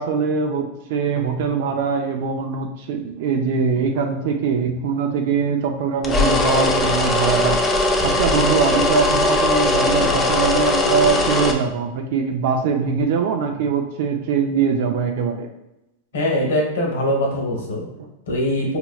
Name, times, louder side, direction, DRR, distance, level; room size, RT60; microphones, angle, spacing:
voice 1, 0.0-15.5 17.6-17.7 18.0-18.1, right 6 dB, 60° right, 3 dB, 0.4 m, -22 dB
sound 1, 6.0-11.5, left 2 dB, 15° left, 0.5 m, -19 dB
voice 2, 16.1-17.8 18.3-18.8, left 1 dB, 90° left, -1 dB, 1.2 m, -22 dB
4.4 x 2.9 x 2.3 m, 0.91 s
supercardioid pair, 145°, 0 cm